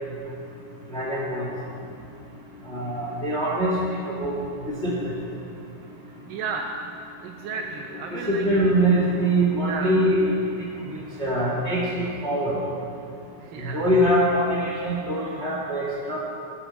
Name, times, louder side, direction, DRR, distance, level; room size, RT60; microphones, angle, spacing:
voice 1, 0.9-1.4 2.7-3.7 4.2-4.3 4.6-5.1 8.1-10.6 11.2-12.6 13.6-16.2, right 1 dB, 25° left, -5 dB, 1.4 m, -23 dB
voice 2, 6.3-6.8 7.2-8.5 9.6-10.0 13.4-13.9, right 5 dB, 80° right, 3 dB, 2.1 m, -33 dB
19.0 x 10.0 x 4.2 m, 2.6 s
omnidirectional pair, 4.5 m